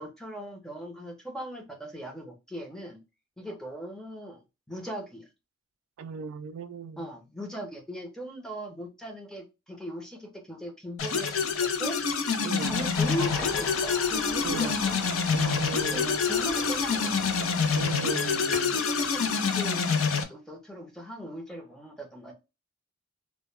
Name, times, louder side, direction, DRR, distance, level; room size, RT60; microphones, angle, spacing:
voice 1, 0.0-3.0 3.4-4.4 4.7-5.3 7.0-12.0 12.6-14.7 15.9-17.1 18.7-19.9 20.3-22.3, equal, 5° left, 0.5 m, -38 dB
voice 2, 6.0-7.1 12.4-12.8 14.4-14.8 15.3-16.2 17.8-18.8, right 5 dB, 90° right, 0.3 m, -36 dB
sound 1, 11.0-20.2, left 5 dB, 90° left, 0.5 m, -27 dB
sound 2, 12.6-17.9, left 1 dB, 20° left, 1.0 m, -42 dB
sound 3, 13.4-15.9 16.2-16.3 16.5-17.9 18.3-19.2 19.6-20.1, left 3 dB, 45° left, 0.6 m, -45 dB
2.2 x 2.1 x 3.1 m
head